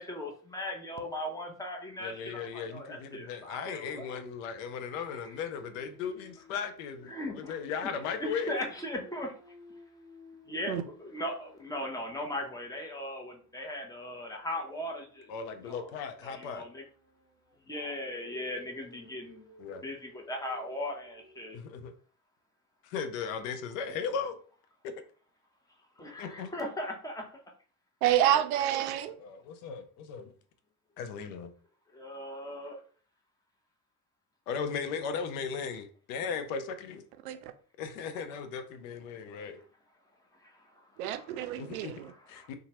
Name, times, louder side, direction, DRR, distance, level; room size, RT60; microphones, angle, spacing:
voice 1, 0.0-4.2 5.2-5.4 7.1-7.9 8.2-9.3 10.5-15.3 15.6-15.9 16.2-16.8 17.7-19.5 19.8-21.6 26.0-27.3 31.9-32.8 40.4-40.6 41.1-42.5, left 1 dB, 10° left, 0.7 m, -38 dB
voice 2, 2.0-8.6 15.3-16.6 19.6-19.8 21.5-21.9 22.8-24.3 26.2-26.5 29.2-30.3 31.0-31.5 34.5-37.0 37.8-39.6 41.6-41.9 42.3-42.5, left 6 dB, 60° left, 0.6 m, -37 dB
Dog, 3.8-8.0 8.3-13.3 14.4-21.4, equal, 15° right, 1.2 m, -56 dB
voice 3, 28.0-29.2 37.2-37.4 41.0-42.1, right 11 dB, 65° right, 0.5 m, -28 dB
2.8 x 2.3 x 2.8 m
figure-of-eight pair, 60°, 47 cm